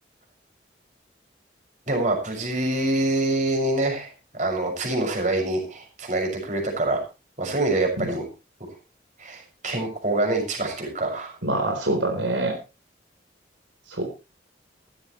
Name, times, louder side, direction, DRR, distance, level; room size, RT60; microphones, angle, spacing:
voice 1, 1.9-7.0 7.4-8.3 9.2-11.4, right 2 dB, 40° right, 2 dB, 6.5 m, -25 dB
voice 2, 11.4-12.5 13.9-14.1, right 2 dB, 80° right, 3 dB, 4.0 m, -25 dB
15.5 x 15.5 x 3.2 m, 0.30 s
head